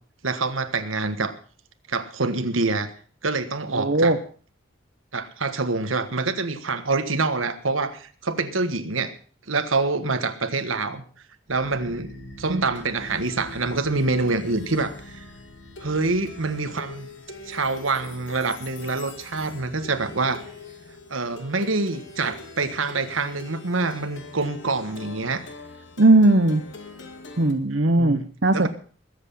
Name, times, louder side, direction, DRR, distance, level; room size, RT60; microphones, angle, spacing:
voice 1, 0.2-1.3 1.9-2.9 3.2-4.1 5.1-9.1 9.5-11.0 11.5-15.2 15.8-17.1 17.4-20.4 21.1-25.4 27.7-28.2 28.5-28.7, right 3 dB, 85° right, 9 dB, 1.5 m, -26 dB
voice 2, 3.7-4.2 12.5-12.6 26.0-26.6 27.4-28.7, right 2 dB, 60° right, 8 dB, 0.9 m, -18 dB
Plucked string instrument, 11.5-27.5, left 2 dB, 65° left, 2.5 m, -42 dB
21.0 x 8.2 x 5.6 m, 0.42 s
head